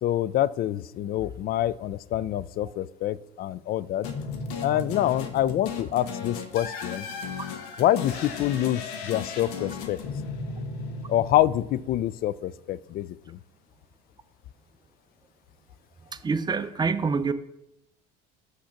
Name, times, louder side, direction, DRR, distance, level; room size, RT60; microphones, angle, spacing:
voice 1, 0.0-4.1 4.6-7.1 7.8-10.0 11.1-13.4, left 13 dB, 45° left, 19 dB, 0.4 m, -26 dB
sound 1, 4.0-12.3, left 5 dB, 80° left, 1.1 m, -35 dB
voice 2, 16.1-17.3, right 5 dB, 20° right, 11 dB, 0.6 m, -26 dB
6.3 x 5.7 x 5.8 m, 0.83 s
supercardioid pair, 85°, 21 cm